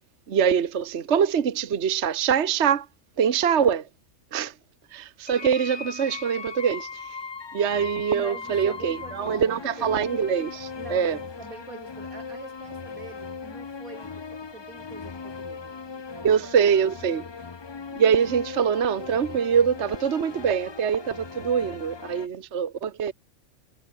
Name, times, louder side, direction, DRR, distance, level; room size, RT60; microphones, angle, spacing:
voice 1, 0.3-2.9 3.2-3.9 4.3-4.5 4.9-7.2 7.5-11.2 16.2-17.2 18.0-23.1, right 7 dB, 55° right, 1.3 m, -24 dB
sound 1, 5.3-22.3, left 5 dB, 45° left, 0.3 m, -39 dB
voice 2, 8.1-9.9 10.8-16.8, right 4 dB, 85° right, 3.4 m, -45 dB
omnidirectional pair, 1.4 m